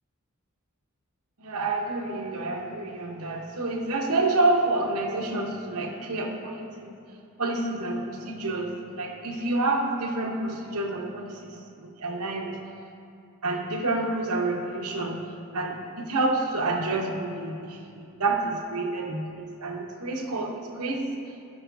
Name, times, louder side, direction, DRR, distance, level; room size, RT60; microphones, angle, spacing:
voice 1, 1.4-7.0 7.4-12.6 13.4-15.2 15.5-21.1, right 2 dB, 90° right, 1 dB, 1.1 m, -28 dB
17.0 x 5.7 x 2.7 m, 2.5 s
head